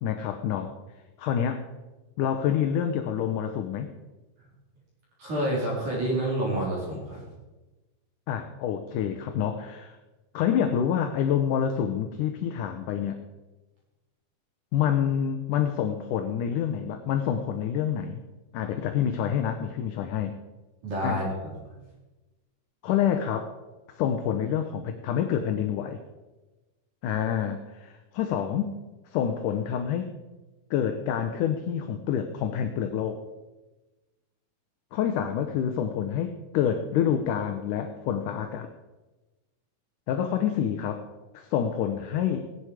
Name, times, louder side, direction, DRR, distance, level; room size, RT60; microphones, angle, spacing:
voice 1, 0.0-0.7 1.2-1.6 2.2-3.9 8.3-10.0 10.3-13.2 14.7-18.2 18.5-20.3 21.0-21.2 22.8-23.5 23.9-26.0 27.0-28.8 29.1-30.1 30.7-33.2 34.9-38.7 40.1-41.0 41.3-42.5, left 9 dB, 70° left, 7 dB, 2.2 m, -27 dB
voice 2, 5.2-7.2 20.8-21.5, right 1 dB, 55° right, -5 dB, 5.9 m, -28 dB
17.5 x 11.0 x 5.0 m, 1.1 s
omnidirectional pair, 4.2 m